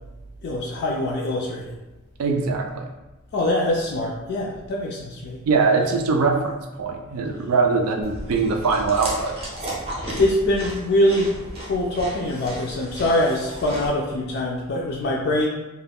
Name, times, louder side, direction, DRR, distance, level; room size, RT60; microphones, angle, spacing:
voice 1, 0.4-1.8 3.3-5.4 10.2-11.3 11.6-15.5, left 1 dB, 50° left, -2 dB, 0.3 m, -23 dB
voice 2, 2.2-2.9 5.5-9.4, right 4 dB, 70° right, 3 dB, 0.3 m, -22 dB
Chewing mastication, 8.0-13.9, right 1 dB, 25° right, 0.6 m, -34 dB
2.3 x 2.1 x 3.4 m, 1.0 s
head